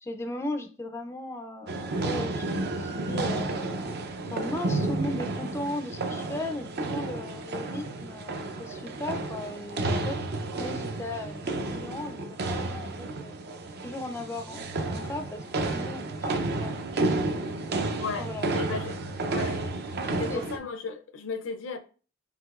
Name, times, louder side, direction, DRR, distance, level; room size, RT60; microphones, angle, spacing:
voice 1, 0.0-3.5 4.3-10.2 10.6-13.3 13.8-16.8 18.2-19.0 20.3-20.4, left 1 dB, 15° left, 0.4 m, -37 dB
sound 1, 1.7-20.6, right 2 dB, 55° right, 0.5 m, -31 dB
voice 2, 18.0-19.6 20.2-21.8, left 5 dB, 80° left, 0.5 m, -35 dB
4.9 x 3.5 x 2.3 m
head